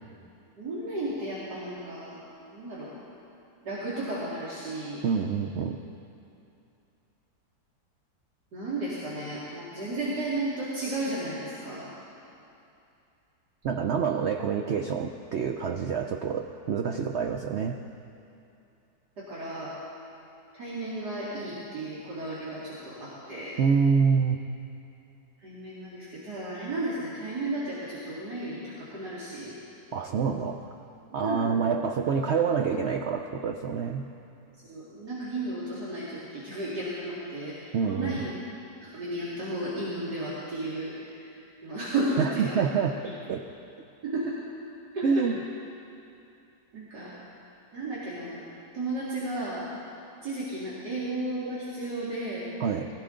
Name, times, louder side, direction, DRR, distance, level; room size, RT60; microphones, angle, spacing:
voice 1, 0.6-2.2 2.5-2.9 3.6-5.0 8.5-11.9 19.2-19.7 20.5-23.6 25.4-29.5 31.1-31.7 34.6-38.3 38.8-41.3 41.6-42.6 44.0-44.3 44.9-45.2 46.7-47.1 47.7-48.4 48.7-49.6 50.2-52.5, right 2 dB, 70° right, -9 dB, 2.8 m, -33 dB
voice 2, 5.0-5.8 13.6-17.8 23.6-24.4 29.9-30.8 31.1-34.1 37.7-38.2 42.2-43.0 43.3-43.4 45.0-45.4 52.6-52.9, right 6 dB, 90° right, 4 dB, 0.6 m, -27 dB
21.0 x 14.5 x 3.8 m, 2.7 s
omnidirectional pair, 1.8 m